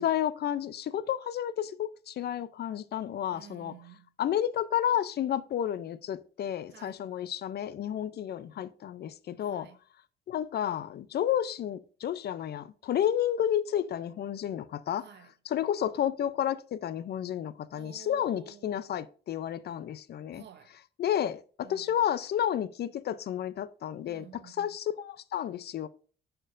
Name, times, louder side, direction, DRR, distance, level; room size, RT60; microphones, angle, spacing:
voice 1, 0.0-3.7 4.2-9.7 10.3-15.0 15.5-20.4 21.0-25.9, left 10 dB, 55° left, 0.4 m, -31 dB
voice 2, 3.3-4.1 6.7-7.0 9.4-9.8 15.0-15.3 17.7-18.8 20.3-20.8 21.6-22.0 24.0-24.8, right 10 dB, 60° right, 0.7 m, -52 dB
10.0 x 4.4 x 2.5 m
cardioid pair, 90°, 20 cm